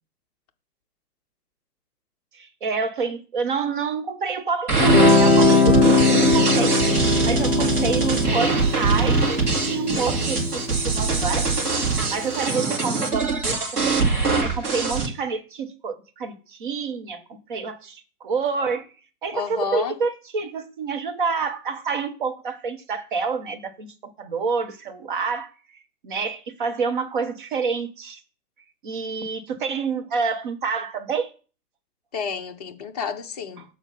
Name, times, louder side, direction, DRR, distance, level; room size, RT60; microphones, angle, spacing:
voice 1, 2.3-6.8 7.2-11.5 12.1-14.1 14.4-18.9 19.2-25.5 26.0-28.2 28.8-31.3 33.6-33.7, right 5 dB, 30° right, 1.0 m, -28 dB
sound 1, 4.7-15.1, right 4 dB, 75° right, 2.8 m, -23 dB
Guitar, 4.8-11.9, left 3 dB, 5° right, 0.9 m, -20 dB
voice 2, 19.3-19.9 32.1-33.6, left 6 dB, 25° left, 0.6 m, -30 dB
7.1 x 4.4 x 5.6 m
figure-of-eight pair, 130°, 47 cm